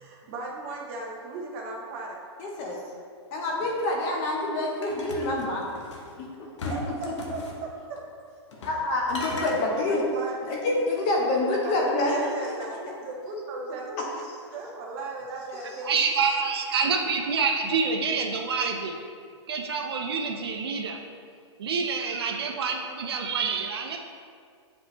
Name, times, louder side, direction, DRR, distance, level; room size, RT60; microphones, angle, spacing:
voice 1, 0.0-2.2 6.7-8.0 9.5-9.6 10.1-10.4 11.6-14.0 14.5-15.9, right 3 dB, 25° right, -1 dB, 0.9 m, -36 dB
voice 2, 2.4-2.7 3.3-5.6 6.2-6.3 8.6-10.0 10.5-12.5, left 2 dB, 20° left, -1 dB, 0.7 m, -26 dB
sound 1, 4.8-6.1 6.6-7.6 8.5-8.8 9.1-9.6, left 3 dB, 80° left, 1.2 m, -37 dB
voice 3, 15.8-19.0 19.5-21.0 21.6-24.0, right 5 dB, 60° right, 3 dB, 0.7 m, -27 dB
8.2 x 5.3 x 3.0 m, 2.2 s
hypercardioid pair, 175°, 15 cm